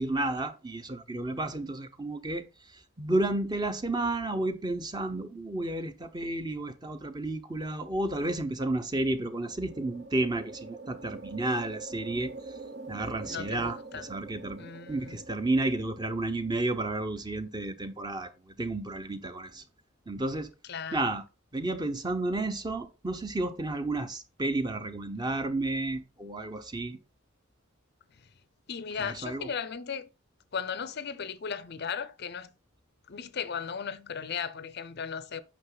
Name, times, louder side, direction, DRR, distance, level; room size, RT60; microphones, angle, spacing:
voice 1, 0.0-2.5 3.0-12.3 12.9-19.6 20.1-20.5 20.9-21.2 21.5-27.0 28.9-29.5, right 2 dB, 20° right, 0.9 m, -32 dB
sound 1, 8.9-16.5, right 3 dB, 50° right, 0.9 m, -45 dB
voice 2, 13.2-14.0 14.6-15.2 20.7-21.0 28.7-30.1 30.5-32.5 33.1-35.4, left 6 dB, 50° left, 0.6 m, -36 dB
8.7 x 5.9 x 3.9 m
head